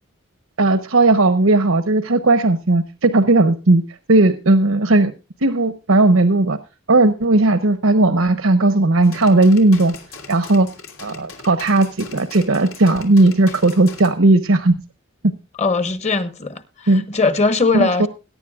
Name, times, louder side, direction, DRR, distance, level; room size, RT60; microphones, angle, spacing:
voice 1, 0.6-3.8 4.1-5.1 5.4-6.6 6.9-10.0 10.3-10.7 11.0-14.8 16.9-17.0 17.7-18.1, right 2 dB, 85° right, 0.9 m, -15 dB
Mystericus Apparatus Loop, 9.0-14.1, left 4 dB, 85° left, 3.2 m, -40 dB
voice 2, 15.6-18.1, left 3 dB, 35° left, 1.1 m, -20 dB
21.5 x 10.5 x 2.4 m
head